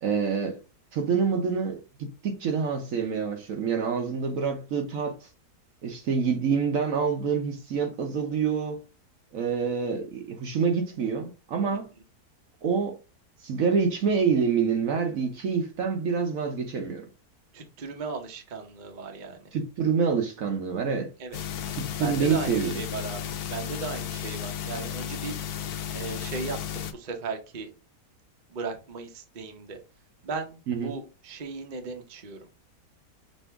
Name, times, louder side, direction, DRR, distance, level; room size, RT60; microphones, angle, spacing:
voice 1, 0.0-0.5 0.9-5.2 5.8-8.8 9.3-11.9 12.6-13.0 13.4-17.0 19.5-21.1 21.7-22.7 30.7-30.9, right 6 dB, 60° right, 1.1 m, -27 dB
voice 2, 17.5-19.4 21.2-21.4 21.9-25.3 25.9-27.7 28.5-29.8 30.2-32.5, right 4 dB, 40° right, 0.8 m, -36 dB
sound 1, 21.3-26.9, left 9 dB, 75° left, 1.1 m, -34 dB
5.2 x 2.7 x 3.4 m
omnidirectional pair, 1.7 m